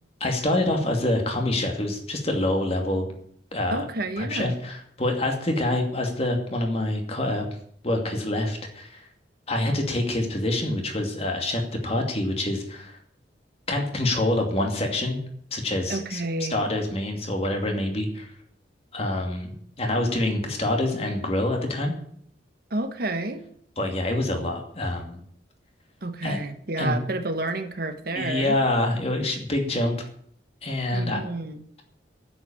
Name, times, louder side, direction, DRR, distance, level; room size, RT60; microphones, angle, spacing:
voice 1, 0.2-3.0 3.5-3.8 4.2-7.5 7.8-9.0 9.5-13.0 13.7-15.2 15.5-16.2 16.5-18.3 18.9-21.9 23.8-25.2 26.2-26.4 26.8-26.9 28.1-29.9 30.6-31.2, left 1 dB, 35° left, 2 dB, 2.5 m, -26 dB
voice 2, 3.7-4.5 15.9-16.6 22.7-23.4 26.0-28.6 30.9-31.6, right 2 dB, 55° right, 8 dB, 1.3 m, -30 dB
9.8 x 8.3 x 9.0 m, 0.65 s
head